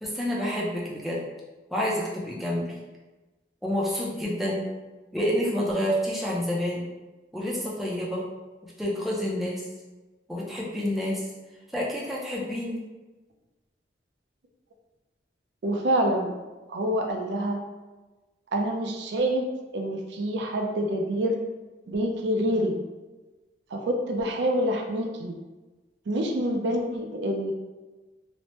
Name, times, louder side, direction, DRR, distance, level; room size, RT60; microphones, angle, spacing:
voice 1, 0.0-1.2 1.7-2.8 3.6-4.6 5.1-6.9 7.3-8.2 8.8-9.6 10.3-11.3 11.7-12.8, equal, ahead, -5 dB, 0.4 m, -28 dB
voice 2, 15.6-16.4 16.7-17.6 18.5-19.5 19.7-21.4 21.9-22.8 23.7-25.3 26.1-27.5, equal, 75° right, 2 dB, 0.4 m, -26 dB
3.1 x 2.0 x 2.9 m, 1.2 s
head